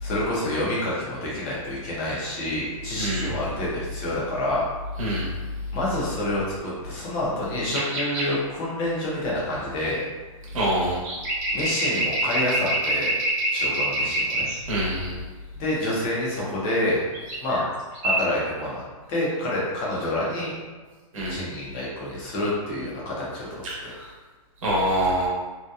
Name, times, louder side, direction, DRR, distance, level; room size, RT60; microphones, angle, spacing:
voice 1, 0.0-4.7 5.7-10.1 11.5-13.1 13.5-14.5 15.5-17.0 17.4-17.6 18.0-18.8 19.1-20.5 21.3-23.9, left 1 dB, 20° left, -6 dB, 0.5 m, -28 dB
voice 2, 3.0-3.3 5.0-5.3 10.5-11.0 14.7-15.1 21.1-21.4 24.6-25.3, right 1 dB, 70° right, -5 dB, 1.0 m, -24 dB
sound 1, 7.7-8.3 10.9-14.6 17.1-17.7 17.9-18.2, right 1 dB, 30° right, 0.5 m, -26 dB
2.7 x 2.2 x 2.3 m, 1.3 s
hypercardioid pair, 170°, 18 cm